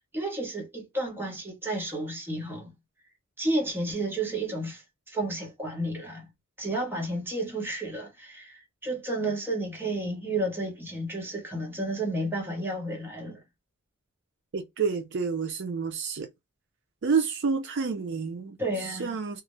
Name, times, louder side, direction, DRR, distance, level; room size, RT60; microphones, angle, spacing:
voice 1, 0.1-2.7 3.4-6.3 6.6-13.4 18.6-19.1, right 2 dB, 10° right, 0.8 m, -31 dB
voice 2, 14.5-16.3 17.0-19.4, right 5 dB, 60° right, 0.5 m, -29 dB
2.4 x 2.0 x 2.9 m
head